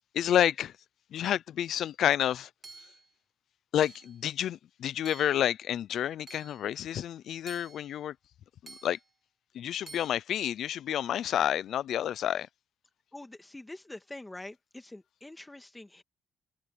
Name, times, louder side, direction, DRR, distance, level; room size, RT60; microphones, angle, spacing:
voice 1, 0.1-0.7 1.1-2.5 3.7-8.1 8.6-9.0 9.5-12.5, left 10 dB, 70° left, 0.6 m, -29 dB
Hammer / Chink clink, 2.6-3.1 3.8-4.2 5.1-5.5 6.3-6.6 7.5-7.9 8.7-9.1 9.9-10.1, right 3 dB, 30° right, 2.1 m, -50 dB
voice 2, 13.1-16.0, left 2 dB, 15° left, 2.1 m, -45 dB
cardioid pair, 90°, 0 cm